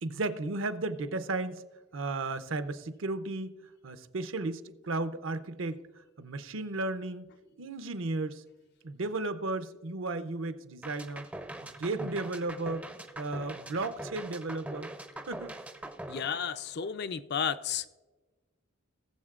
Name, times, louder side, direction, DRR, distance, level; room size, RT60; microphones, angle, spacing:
voice 1, 0.0-1.7 1.9-7.3 7.6-8.4 8.8-11.3 11.6-12.9 13.2-14.9 15.3-15.5, right 2 dB, 70° right, 0.6 m, -34 dB
sound 1, 10.8-17.0, right 1 dB, 5° right, 0.4 m, -42 dB
voice 2, 16.1-17.9, left 7 dB, 50° left, 0.4 m, -32 dB
19.5 x 7.4 x 2.4 m
head